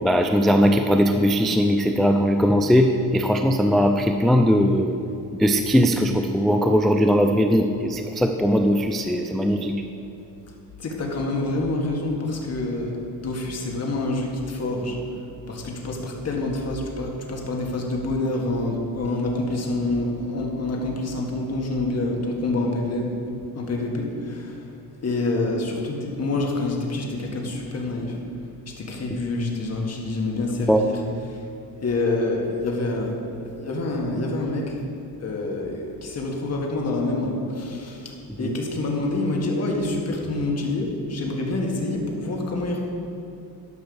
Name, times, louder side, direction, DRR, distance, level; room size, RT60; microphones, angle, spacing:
voice 1, 0.0-2.9 3.1-5.0 5.4-9.8 30.7-30.8 38.4-38.5, equal, ahead, 5 dB, 0.3 m, -19 dB
voice 2, 10.8-15.0 15.5-23.1 23.5-24.7 25.0-28.2 28.8-31.0 31.3-31.4 31.8-34.8 35.2-42.8, left 2 dB, 40° left, 0 dB, 1.8 m, -27 dB
12.0 x 5.6 x 7.0 m, 2.7 s
cardioid pair, 140°, 40 cm